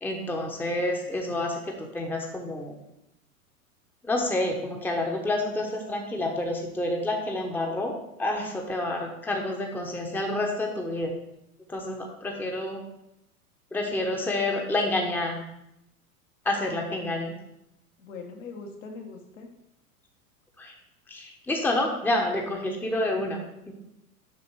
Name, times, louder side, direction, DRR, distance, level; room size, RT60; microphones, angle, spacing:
voice 1, 0.0-2.7 4.0-11.1 11.7-12.8 13.7-15.4 16.4-17.3 20.6-20.7 21.1-23.7, left 1 dB, 5° left, 1 dB, 1.0 m, -29 dB
voice 2, 18.0-19.5, left 4 dB, 60° left, 2 dB, 1.6 m, -41 dB
7.5 x 6.1 x 4.7 m, 0.82 s
figure-of-eight pair, 90°, 43 cm